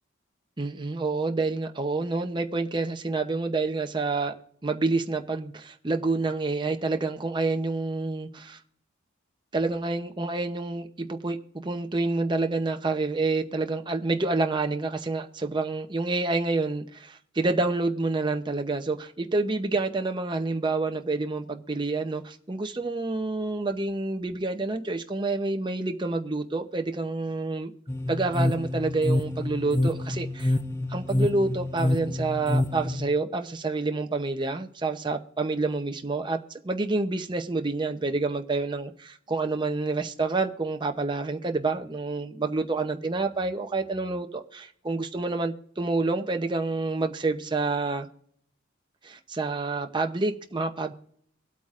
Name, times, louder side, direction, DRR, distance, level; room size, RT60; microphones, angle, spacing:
voice 1, 0.6-4.3 4.6-8.6 9.5-27.7 28.1-30.6 30.9-36.4 36.6-48.1 49.0-50.9, right 3 dB, 25° right, 0.7 m, -28 dB
sound 1, 27.9-33.1, left 1 dB, 15° left, 0.4 m, -27 dB
23.5 x 8.4 x 2.5 m
head